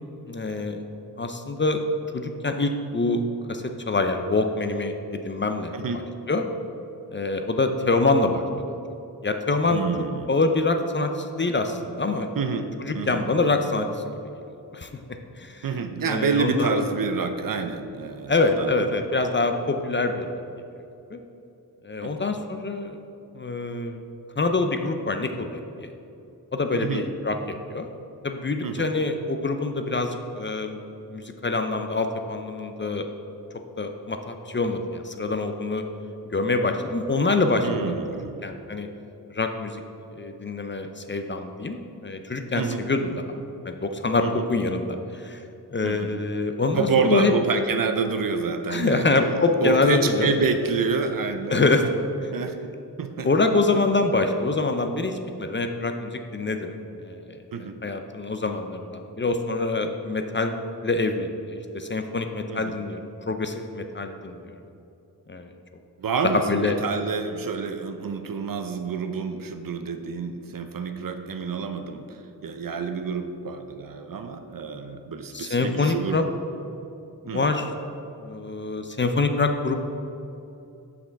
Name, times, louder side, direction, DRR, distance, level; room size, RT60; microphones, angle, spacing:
voice 1, 0.3-0.8 1.2-1.8 2.1-3.2 3.5-5.7 6.3-6.4 7.1-8.4 9.2-9.8 10.3-12.3 12.8-13.9 14.7-14.9 15.4-15.6 16.0-16.7 18.3-20.3 21.1-21.2 21.8-23.0 23.3-24.0 24.4-25.9 26.5-27.9 28.2-30.8 31.1-33.1 33.8-35.8 36.3-38.0 38.4-38.9 39.3-39.8 40.2-43.4 43.7-45.4 45.7-47.3 48.7-50.3 51.5-51.8 52.2-52.3 53.2-60.5 60.8-64.4 65.3-65.5 66.5-66.8 75.3-76.2 77.3-77.7 78.2-79.8, left 3 dB, 30° left, 6 dB, 0.5 m, -25 dB
voice 2, 9.7-10.3 12.4-12.7 12.9-13.2 15.6-18.9 22.0-22.1 26.7-27.0 28.6-28.9 37.6-38.4 42.6-42.8 44.2-44.4 45.8-46.1 46.7-49.3 49.6-51.6 52.3-52.7 53.0-53.3 57.5-57.8 62.5-62.7 66.0-76.2 77.3-77.4, right 5 dB, 55° right, 7 dB, 0.6 m, -28 dB
6.4 x 6.0 x 4.6 m, 2.7 s
cardioid pair, 65°, 40 cm